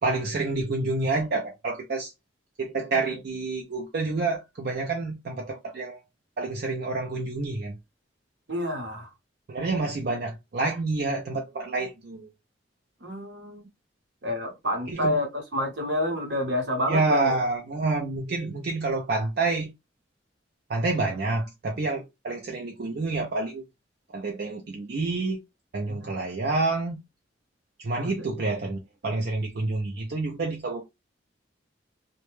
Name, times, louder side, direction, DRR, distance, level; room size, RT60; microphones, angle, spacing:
voice 1, 0.0-2.1 2.6-6.0 6.4-7.8 9.5-12.3 14.9-15.2 16.9-19.7 20.7-23.6 24.1-25.4 25.7-27.0 27.8-30.8, right 3 dB, 55° right, 0.4 m, -28 dB
voice 2, 8.5-9.1 13.0-13.7 14.2-17.3 25.9-26.1 27.9-28.1, left 1 dB, 70° right, 0.9 m, -29 dB
2.1 x 2.1 x 2.9 m
head